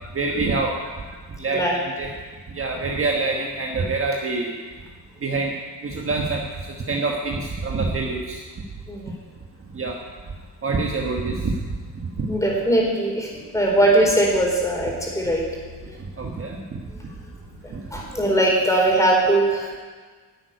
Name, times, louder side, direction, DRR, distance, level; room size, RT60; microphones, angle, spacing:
voice 1, 0.1-0.9 1.4-2.1 2.5-4.5 5.2-5.5 5.8-6.4 6.9-8.4 9.7-9.9 10.6-11.5 12.2-12.3 16.2-16.8 17.7-17.8, right 3 dB, 30° right, 1 dB, 1.3 m, -25 dB
voice 2, 12.3-15.4 17.6-19.8, right 1 dB, 10° left, -3 dB, 4.2 m, -20 dB
11.0 x 8.8 x 9.6 m, 1.5 s
cardioid pair, 135°, 41 cm